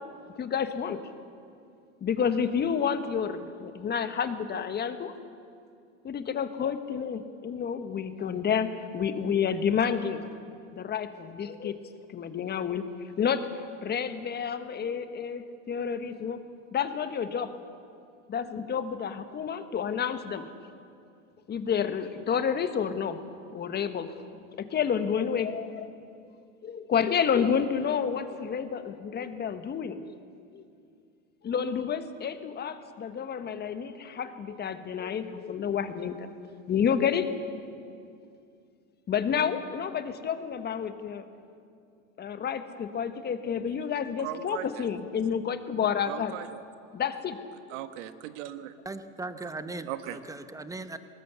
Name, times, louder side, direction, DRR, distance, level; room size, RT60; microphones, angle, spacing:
voice 1, 0.4-1.0 2.0-5.1 6.0-10.2 10.7-11.8 12.1-12.9 13.2-13.5 13.8-16.4 16.7-17.5 18.3-20.5 21.5-23.2 23.5-24.1 24.6-25.9 26.6-30.1 30.5-30.6 31.4-36.4 36.7-37.3 39.1-41.3 42.2-46.3 46.9-47.4, left 7 dB, 25° left, 11 dB, 1.2 m, -29 dB
voice 2, 44.2-44.8 46.1-46.6 47.7-48.8 49.9-50.2, right 13 dB, 70° right, 11 dB, 1.3 m, -38 dB
voice 3, 48.8-51.0, right 2 dB, 10° right, 10 dB, 0.9 m, -38 dB
19.5 x 18.5 x 8.1 m, 2.4 s
supercardioid pair, 125°, 39 cm